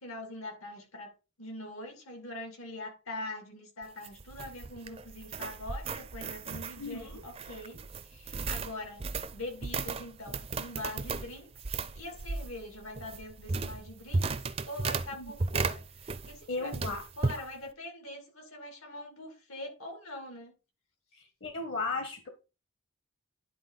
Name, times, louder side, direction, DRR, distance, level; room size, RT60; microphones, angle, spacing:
voice 1, 0.0-7.8 8.1-9.0 9.3-11.5 11.9-14.3 14.7-20.5, left 1 dB, 85° left, 2.4 m, -43 dB
sound 1, 3.8-16.4 16.7-17.4, right 3 dB, 30° right, 0.4 m, -35 dB
voice 2, 6.8-7.2 15.1-15.3 16.5-17.0 21.1-22.3, left 3 dB, 55° left, 1.1 m, -36 dB
10.0 x 4.1 x 3.9 m
head